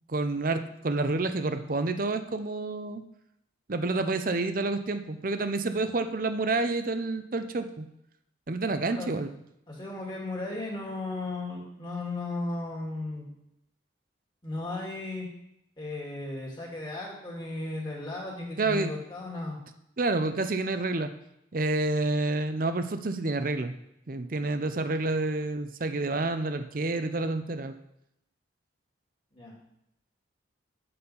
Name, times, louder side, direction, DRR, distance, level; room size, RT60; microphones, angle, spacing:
voice 1, 0.1-3.0 3.7-7.9 8.5-9.3 18.6-18.9 20.0-21.1 21.5-23.7 24.1-27.7, right 2 dB, 45° right, 10 dB, 0.6 m, -29 dB
voice 2, 8.8-9.2 9.7-13.3 14.4-15.3 15.8-19.6 29.3-29.5, left 2 dB, 25° left, -2 dB, 2.2 m, -35 dB
8.5 x 6.8 x 5.5 m, 0.81 s
head